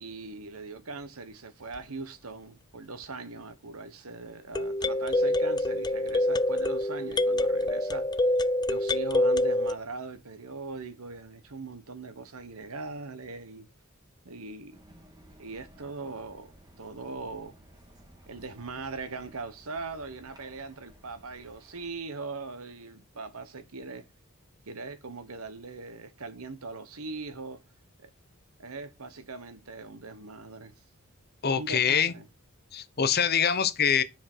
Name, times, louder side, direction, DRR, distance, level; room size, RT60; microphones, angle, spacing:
voice 1, 0.0-8.2 8.7-13.7 14.2-14.8 15.4-16.5 16.8-17.6 18.3-24.1 24.7-27.6 28.0-28.1 28.6-30.7 31.5-32.3, right 3 dB, 85° right, 1.2 m, -40 dB
sound 1, 1.8-1.9 4.6-9.8, left 1 dB, 20° left, 0.4 m, -26 dB
sound 2, 14.7-21.9, equal, 20° right, 2.1 m, -56 dB
voice 2, 31.4-32.1 32.7-34.0, left 7 dB, 45° left, 0.9 m, -24 dB
9.3 x 5.1 x 4.4 m
head